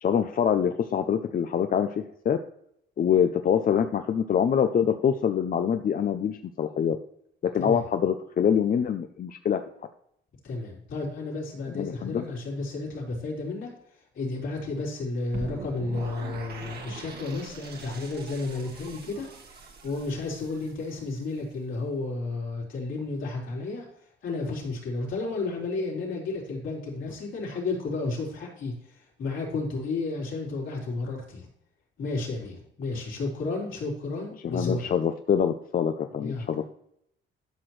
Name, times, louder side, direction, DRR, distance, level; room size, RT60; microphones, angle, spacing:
voice 1, 0.0-2.4 3.0-7.0 7.5-9.6 11.7-12.2 34.4-36.6, left 8 dB, 45° left, 7 dB, 0.6 m, -25 dB
voice 2, 7.5-7.9 10.4-19.3 19.6-23.8 24.2-31.5 32.0-34.9 36.2-36.6, left 3 dB, 75° left, -3 dB, 4.0 m, -32 dB
sound 1, 15.3-21.4, right 4 dB, 50° right, 1.7 m, -43 dB
12.0 x 6.0 x 3.2 m, 0.72 s
cardioid pair, 90°, 20 cm